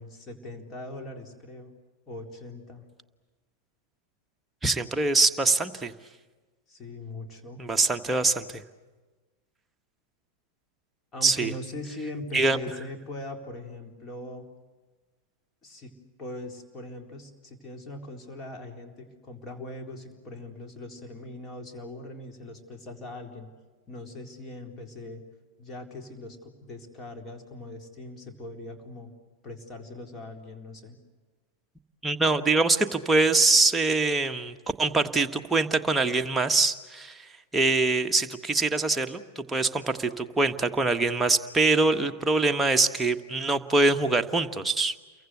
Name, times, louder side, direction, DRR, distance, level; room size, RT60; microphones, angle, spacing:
voice 1, 0.0-1.7 2.1-2.8 6.7-7.7 11.1-14.5 15.6-15.9 16.2-23.5 23.9-25.2 25.6-29.1 29.4-31.0, left 2 dB, 25° left, 4 dB, 4.0 m, -41 dB
voice 2, 4.6-5.9 7.6-8.6 11.2-11.5 12.3-12.6 32.0-37.2 37.5-44.9, right 3 dB, 10° right, 5 dB, 1.4 m, -24 dB
30.0 x 23.0 x 8.1 m, 1.3 s
figure-of-eight pair, 90°, 0 cm